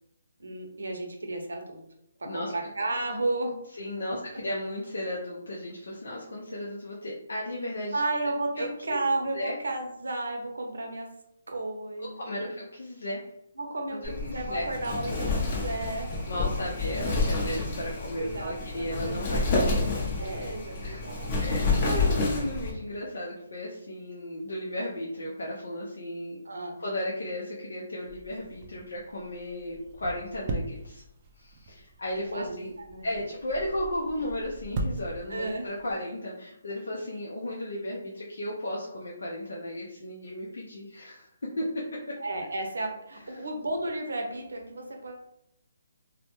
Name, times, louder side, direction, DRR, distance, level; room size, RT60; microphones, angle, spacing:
voice 1, 0.4-1.8 2.2-3.6 4.3-4.4 7.9-11.1 11.5-12.5 13.6-16.2 18.2-21.4 26.5-26.8 32.3-33.2 35.3-35.7 42.2-45.2, right 2 dB, 85° right, 3 dB, 0.6 m, -33 dB
voice 2, 3.8-8.0 8.6-8.7 9.3-9.6 12.2-13.3 13.9-14.7 16.3-19.9 20.8-21.0 21.4-26.4 26.8-31.0 31.4-32.7 33.0-41.3 41.6-41.8 43.4-43.5, left 1 dB, 80° left, -4 dB, 0.5 m, -35 dB
Wind, 14.0-22.7, left 3 dB, 35° left, 0.6 m, -29 dB
sound 1, 28.1-35.9, right 2 dB, 30° right, 0.3 m, -39 dB
2.1 x 2.1 x 2.9 m, 0.77 s
hypercardioid pair, 155°, 0 cm